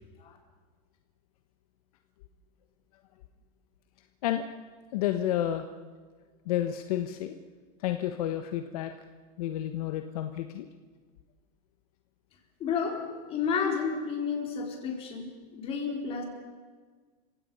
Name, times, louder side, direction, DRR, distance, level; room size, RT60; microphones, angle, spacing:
voice 1, 4.9-5.7 6.5-7.4 7.8-8.9 9.4-10.7, left 12 dB, 65° left, 7 dB, 1.2 m, -30 dB
voice 2, 12.6-16.2, left 6 dB, 30° left, 1 dB, 4.1 m, -31 dB
30.0 x 17.0 x 5.5 m, 1.5 s
supercardioid pair, 155°, 20 cm